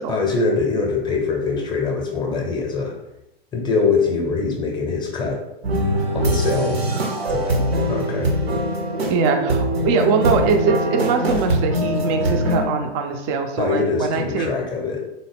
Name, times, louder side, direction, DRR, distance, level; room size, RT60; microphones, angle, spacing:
voice 1, 0.1-2.9 3.5-5.4 6.1-6.8 7.3-7.4 7.9-8.3 13.6-15.0, left 4 dB, 15° left, 0 dB, 0.6 m, -23 dB
sound 1, 5.6-12.7, equal, 80° right, 0.8 m, -22 dB
voice 2, 9.1-14.5, right 5 dB, 30° right, 5 dB, 0.4 m, -22 dB
3.8 x 2.1 x 3.4 m, 0.89 s
figure-of-eight pair, 105°, 30 cm